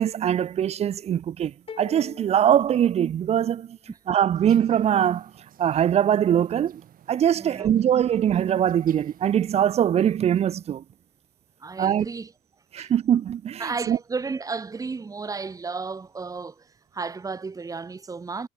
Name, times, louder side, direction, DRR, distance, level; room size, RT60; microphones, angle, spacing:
voice 1, 0.0-3.8 4.1-5.3 5.6-6.8 7.1-10.8 11.8-12.1 12.7-14.0, right 10 dB, 40° right, 0.4 m, -22 dB
sound 1, 1.7-3.7, left 6 dB, 35° left, 1.7 m, -44 dB
sound 2, 4.3-9.8, right 10 dB, 55° right, 6.1 m, -55 dB
voice 2, 7.3-7.7 11.6-12.3 12.8-12.9 13.6-18.5, right 4 dB, 20° right, 1.1 m, -33 dB
cardioid pair, 110°, 17 cm